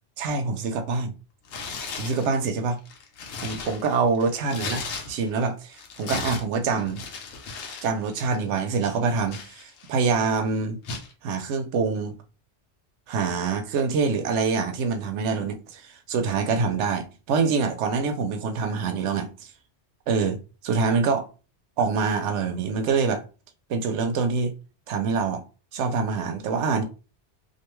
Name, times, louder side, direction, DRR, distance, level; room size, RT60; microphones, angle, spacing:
voice 1, 0.2-1.1 2.0-2.8 3.4-7.1 7.8-10.8 11.2-12.1 13.1-19.5 20.1-20.4 20.6-21.3 21.8-23.2 23.7-24.5 24.9-25.4 25.7-26.8, right 5 dB, 90° right, 0.9 m, -25 dB
Tearing, 1.4-2.3 2.8-5.4 5.7-7.9 8.1-8.4 8.9-10.0 10.8-11.1, left 4 dB, 80° left, 0.9 m, -36 dB
2.5 x 2.2 x 3.0 m
omnidirectional pair, 1.2 m